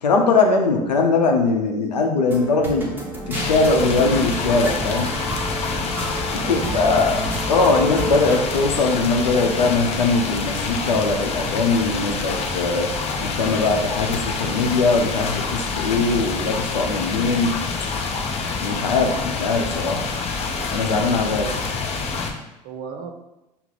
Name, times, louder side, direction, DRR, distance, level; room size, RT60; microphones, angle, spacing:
voice 1, 0.0-3.0 3.3-5.1 6.3-7.2 7.5-13.0 13.2-17.6 18.6-20.1 20.7-21.5, left 3 dB, 75° left, 3 dB, 0.7 m, -21 dB
sound 1, 2.3-8.4, equal, 10° right, 0.9 m, -30 dB
sound 2, 3.3-22.3, left 4 dB, 30° left, 0.6 m, -27 dB
voice 2, 6.2-7.0 21.3-22.4 22.6-23.1, right 6 dB, 45° right, 4 dB, 0.7 m, -37 dB
5.6 x 2.1 x 3.8 m, 0.93 s
figure-of-eight pair, 75°, 21 cm